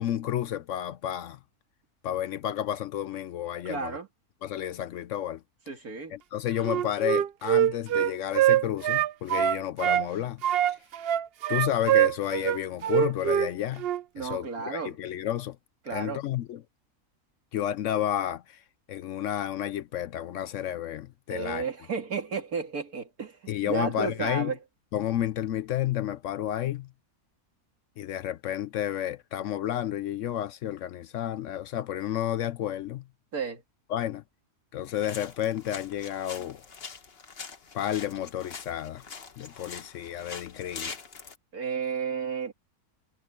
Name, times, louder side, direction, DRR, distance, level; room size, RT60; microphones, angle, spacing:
voice 1, 0.0-1.4 2.0-4.0 4.4-5.4 6.1-10.4 11.5-13.9 14.2-15.6 15.9-16.6 17.5-18.6 18.9-21.6 23.5-24.5 24.9-26.9 28.0-33.0 33.9-34.2 34.7-36.6 37.7-39.0 39.4-40.9, left 11 dB, 70° left, 0.8 m, -31 dB
voice 2, 3.6-4.1 5.7-6.1 14.1-14.9 15.8-16.2 21.3-24.6 33.3-33.6 41.5-42.5, right 5 dB, 80° right, 2.7 m, -32 dB
Wind instrument woodwind instrument, 6.6-10.1 10.4-13.5 13.8-14.0, right 11 dB, 65° right, 0.6 m, -24 dB
sound 1, 34.8-41.4, left 5 dB, 45° left, 1.4 m, -43 dB
omnidirectional pair, 1.5 m